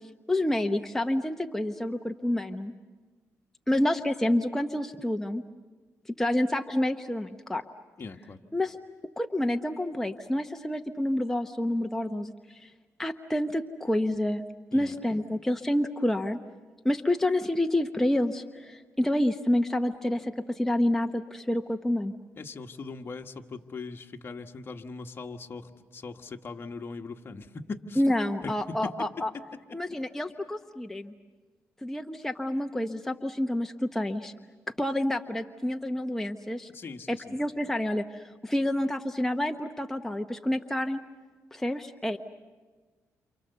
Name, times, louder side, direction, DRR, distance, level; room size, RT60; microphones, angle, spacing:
voice 1, 0.3-2.7 3.7-5.4 6.2-7.6 8.5-8.8 9.2-12.7 13.0-14.4 14.7-16.4 16.8-22.1 28.0-29.3 29.7-31.1 31.8-34.3 34.8-36.7 37.1-41.0 41.5-42.2, left 1 dB, 5° left, 5 dB, 1.0 m, -28 dB
voice 2, 8.0-8.4 14.7-15.0 22.4-28.0 28.4-29.1 29.5-29.8 36.7-37.4, left 4 dB, 40° left, 5 dB, 1.6 m, -40 dB
29.0 x 28.0 x 6.9 m, 1.4 s
cardioid pair, 85°, 6 cm